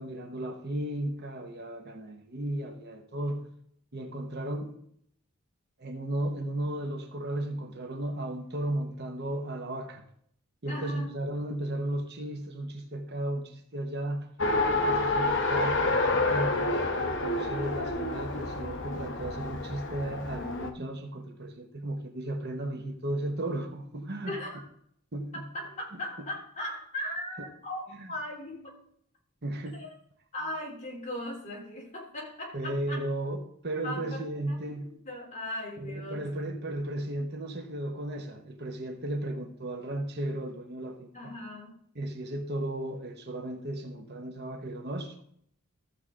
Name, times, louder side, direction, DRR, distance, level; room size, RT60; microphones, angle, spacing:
voice 1, 0.0-3.4 3.9-4.7 5.8-10.0 10.6-14.3 14.7-16.5 17.0-24.4 25.1-25.5 25.9-26.3 28.0-28.1 29.4-29.8 32.5-34.9 35.8-41.1 41.9-45.2, right 1 dB, 50° right, 1.0 m, -35 dB
voice 2, 10.7-11.1 24.3-24.6 25.3-28.7 29.7-30.0 30.3-33.0 33.8-34.6 35.0-36.2 41.1-41.8, left 1 dB, 35° left, 3.3 m, -38 dB
Race car auto racing, 14.4-20.7, left 2 dB, 55° left, 1.0 m, -28 dB
14.0 x 7.1 x 3.7 m
head